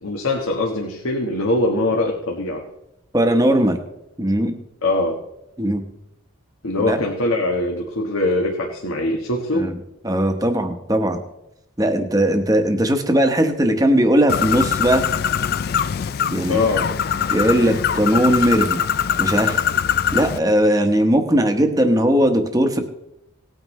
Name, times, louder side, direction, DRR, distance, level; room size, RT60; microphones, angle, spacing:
voice 1, 0.0-2.6 4.8-5.2 6.6-9.7 16.5-16.9, left 2 dB, 85° left, 0 dB, 1.4 m, -22 dB
voice 2, 3.1-3.8 4.2-4.5 5.6-5.8 6.9-7.0 9.5-9.7 10.0-11.2 11.8-15.1 16.3-16.6 17.3-18.8 19.2-19.6 20.1-22.8, right 1 dB, 15° right, 6 dB, 1.0 m, -18 dB
Bird, 14.3-20.4, left 8 dB, 45° left, 0.3 m, -22 dB
18.0 x 9.2 x 3.2 m, 0.86 s
head